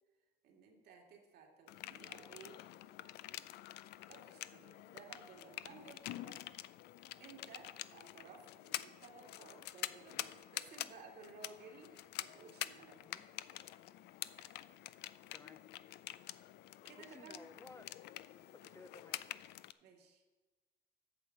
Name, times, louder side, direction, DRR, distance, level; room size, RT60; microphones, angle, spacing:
voice 1, 0.4-2.6 4.1-6.7 7.2-13.1 14.4-14.7 16.8-17.3 19.8-20.2, right 5 dB, 70° right, 1 dB, 2.1 m, -57 dB
sound 1, 1.7-19.7, left 15 dB, 80° left, 0.4 m, -47 dB
voice 2, 13.0-13.3 15.3-15.7 16.9-18.0 18.5-19.3, left 3 dB, 15° left, 12 dB, 0.4 m, -58 dB
8.9 x 6.6 x 7.2 m, 1.2 s
cardioid pair, 110°, 17 cm